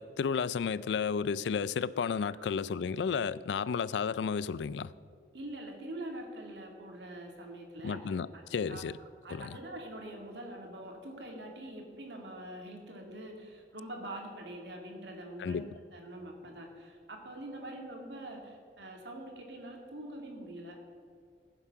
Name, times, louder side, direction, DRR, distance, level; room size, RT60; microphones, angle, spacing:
voice 1, 0.0-4.9 7.8-9.0 9.3-9.5 15.4-15.7, left 6 dB, 85° left, 19 dB, 0.4 m, -32 dB
voice 2, 2.3-2.8 5.3-8.4 8.7-8.8 9.2-20.8, right 1 dB, 85° right, 2 dB, 2.1 m, -44 dB
15.0 x 7.3 x 5.8 m, 2.2 s
head